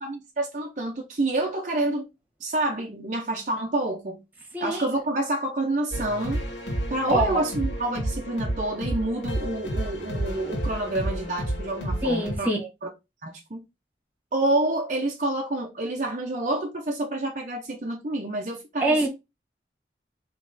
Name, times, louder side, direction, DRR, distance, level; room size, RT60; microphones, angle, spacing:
voice 1, 0.0-2.1 2.4-4.2 4.6-6.4 6.9-12.5 12.8-12.9 13.2-13.6 14.3-19.0, right 2 dB, 40° right, 0.6 m, -28 dB
voice 2, 4.5-4.9 7.1-7.4 12.0-12.7 18.8-19.1, right 1 dB, 10° right, 1.4 m, -24 dB
sound 1, 5.9-12.4, right 1 dB, 85° left, 1.9 m, -30 dB
5.0 x 3.1 x 2.6 m
head